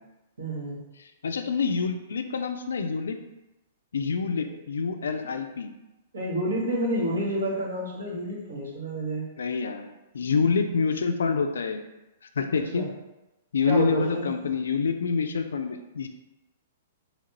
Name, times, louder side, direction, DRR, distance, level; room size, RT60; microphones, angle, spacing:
voice 1, 0.4-0.8 5.1-5.3 6.1-9.3 12.7-12.9 13.7-14.3, right 1 dB, 80° right, -5 dB, 1.2 m, -29 dB
voice 2, 1.2-3.2 3.9-5.7 9.4-11.8 12.4-12.9 13.5-16.1, left 5 dB, 75° left, 7 dB, 0.3 m, -27 dB
3.1 x 2.5 x 2.9 m, 0.99 s
hypercardioid pair, 115°, 0 cm